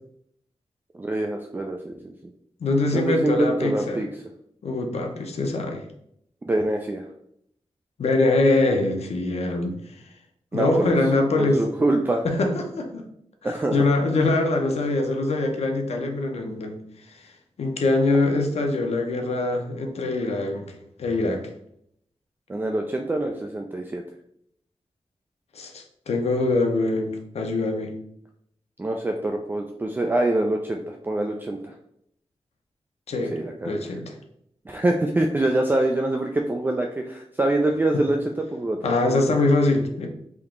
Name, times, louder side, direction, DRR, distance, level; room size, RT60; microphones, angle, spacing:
voice 1, 0.9-2.3 2.9-4.1 6.5-7.1 10.5-11.0 11.4-12.3 13.4-13.9 22.5-24.0 28.8-31.7 33.3-34.0 34.7-38.9, right 2 dB, 20° right, 2 dB, 0.3 m, -25 dB
voice 2, 2.6-4.0 4.6-5.8 8.0-9.8 10.5-11.6 12.2-13.0 13.4-16.8 17.1-17.3 17.6-21.5 25.5-27.9 33.1-33.4 33.6-34.1 37.9-38.0 38.8-40.1, left 2 dB, 90° left, 4 dB, 0.7 m, -23 dB
3.6 x 2.9 x 3.6 m, 0.72 s
wide cardioid pair, 135°, 11 cm